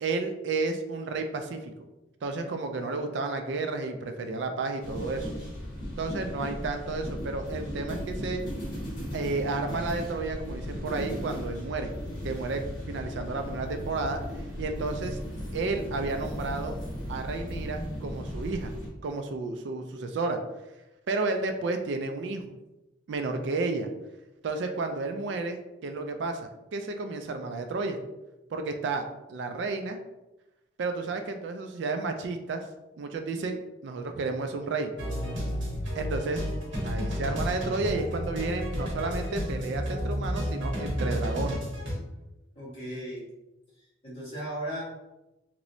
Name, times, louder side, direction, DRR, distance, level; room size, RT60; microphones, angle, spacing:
voice 1, 0.0-1.7 2.2-5.3 6.0-8.4 9.1-11.9 12.2-14.2 14.6-15.2 15.5-16.7 17.1-18.7 19.0-20.4 21.1-22.4 23.1-23.9 24.4-28.0 28.5-29.0 29.3-30.0 30.8-32.6 33.0-34.9 35.9-36.4 36.8-41.6, right 3 dB, 65° right, 6 dB, 0.3 m, -32 dB
sound 1, 4.8-18.9, equal, 65° left, 1.1 m, -36 dB
sound 2, 35.0-42.0, equal, 80° right, 1.2 m, -31 dB
voice 2, 42.5-43.2 44.0-44.8, right 1 dB, 30° left, -8 dB, 1.4 m, -36 dB
3.0 x 2.9 x 2.6 m, 0.98 s
head